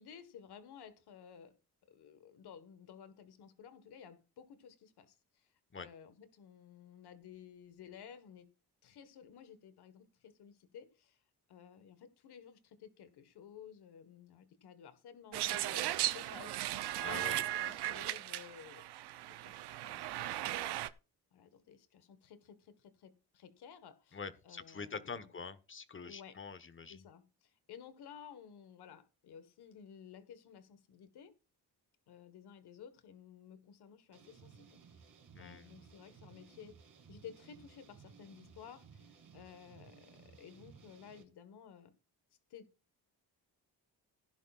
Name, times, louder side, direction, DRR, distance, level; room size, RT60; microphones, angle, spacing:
voice 1, 0.0-1.5 1.9-5.5 5.7-8.5 8.8-11.2 11.5-20.5 21.3-25.3 26.0-26.4 26.9-31.4 32.1-35.0 35.4-41.9 42.5-42.7, left 8 dB, 80° left, 1.6 m, -55 dB
sound 1, 15.3-20.9, right 14 dB, 90° right, 0.7 m, -37 dB
voice 2, 17.0-17.4 24.1-27.0 35.3-35.7, left 5 dB, 30° left, 1.3 m, -45 dB
sound 2, 34.1-41.2, right 6 dB, 55° right, 2.8 m, -59 dB
16.5 x 11.0 x 2.5 m
cardioid pair, 95°, 39 cm